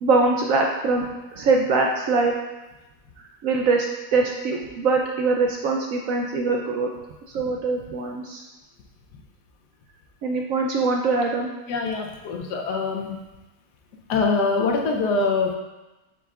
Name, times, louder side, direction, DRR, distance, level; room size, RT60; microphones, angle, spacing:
voice 1, 0.0-2.3 3.4-6.9 7.3-8.4 10.2-11.5, right 3 dB, 70° right, 1 dB, 0.8 m, -22 dB
voice 2, 11.7-13.2 14.1-15.6, left 4 dB, 80° left, 2 dB, 1.3 m, -24 dB
7.1 x 5.7 x 2.4 m, 1.1 s
omnidirectional pair, 1.8 m